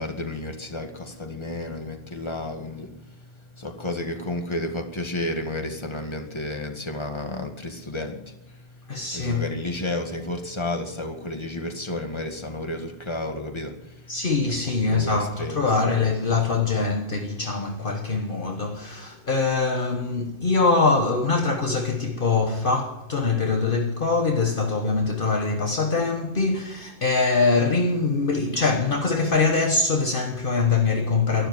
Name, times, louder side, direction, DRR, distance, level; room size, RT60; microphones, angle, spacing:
voice 1, 0.0-14.2 14.5-14.6 14.9-15.6, left 1 dB, 25° left, 1.9 m, -32 dB
voice 2, 8.9-9.5 14.1-31.5, left 4 dB, 55° left, 1.4 m, -23 dB
12.0 x 12.0 x 9.3 m
omnidirectional pair, 1.1 m